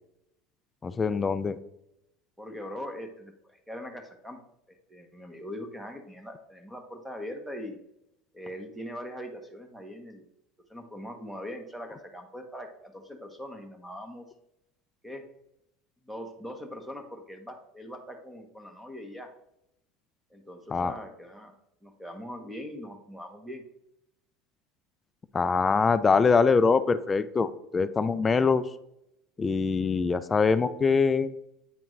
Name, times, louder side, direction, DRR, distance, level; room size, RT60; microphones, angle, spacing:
voice 1, 0.8-1.6 20.7-20.9 25.3-28.6 29.4-31.3, left 5 dB, 20° left, 13 dB, 0.4 m, -23 dB
voice 2, 2.4-4.4 4.9-7.8 8.3-10.3 10.7-14.3 15.0-15.2 16.1-19.3 20.3-21.5 21.8-23.6, equal, 5° right, 4 dB, 1.1 m, -41 dB
9.0 x 3.4 x 3.2 m, 0.80 s
supercardioid pair, 115°, 0 cm